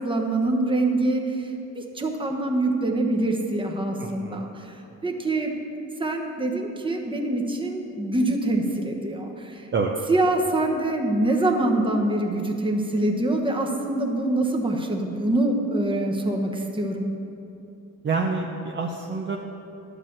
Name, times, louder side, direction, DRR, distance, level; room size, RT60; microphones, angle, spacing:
voice 1, 0.0-4.7 5.0-5.6 6.0-9.7 10.1-17.1, right 2 dB, 15° right, 2 dB, 1.1 m, -25 dB
voice 2, 4.0-4.4 9.7-10.0 18.0-19.4, right 4 dB, 35° right, 0 dB, 0.7 m, -27 dB
11.5 x 5.0 x 7.4 m, 2.8 s
cardioid pair, 115°, 32 cm